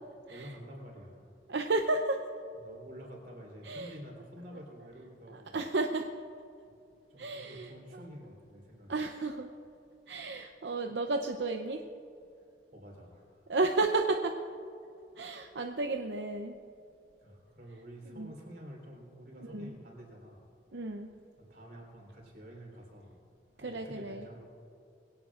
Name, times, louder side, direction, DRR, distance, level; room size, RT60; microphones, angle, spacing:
voice 1, 0.3-1.3 2.5-5.6 7.1-9.0 12.7-13.5 17.2-20.4 21.4-23.1 23.6-24.4, equal, 55° right, -1 dB, 4.1 m, -49 dB
voice 2, 1.5-2.2 3.6-3.9 5.3-6.1 7.2-7.7 8.9-9.5 10.1-11.8 13.5-14.3 15.2-16.6 18.2-18.3 19.4-19.7 20.7-21.1 23.6-24.2, right 3 dB, 80° right, 4 dB, 0.7 m, -32 dB
22.5 x 17.5 x 2.5 m, 2.6 s
head